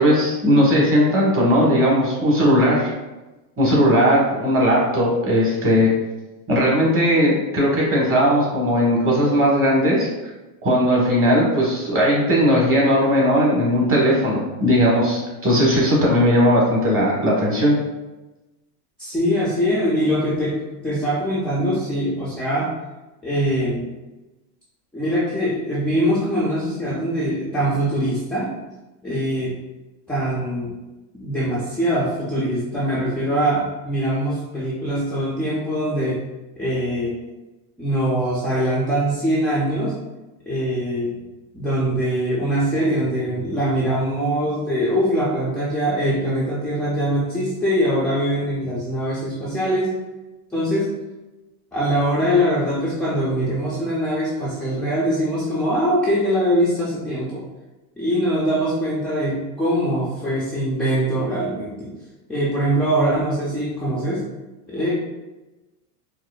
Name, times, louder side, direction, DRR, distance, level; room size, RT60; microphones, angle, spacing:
voice 1, 0.0-2.9 3.6-5.9 6.5-10.1 10.6-17.7, equal, 25° right, -4 dB, 1.4 m, -18 dB
voice 2, 19.0-22.7 23.2-23.9 24.9-28.5 29.0-29.5 30.1-30.7 31.2-36.2 36.6-37.2 37.8-40.0 40.5-41.1 41.5-50.0 50.5-50.9 51.7-57.4 58.0-61.9 62.3-64.3 64.7-64.9, equal, ahead, -8 dB, 0.4 m, -22 dB
4.7 x 2.0 x 2.4 m, 1.1 s
supercardioid pair, 115°, 47 cm